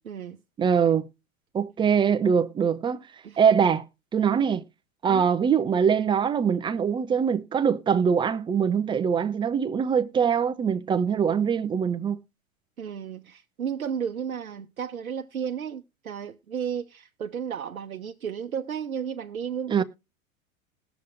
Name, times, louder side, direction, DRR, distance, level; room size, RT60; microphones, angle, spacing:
voice 1, 0.1-0.4 3.2-3.4 5.1-5.3 12.8-19.8, right 8 dB, 90° right, 0.7 m, -33 dB
voice 2, 0.6-1.0 1.5-3.0 3.4-3.8 4.1-4.6 5.0-12.2 19.7-19.8, right 7 dB, 10° right, 0.5 m, -23 dB
20.0 x 7.0 x 2.5 m
hypercardioid pair, 95°, 41 cm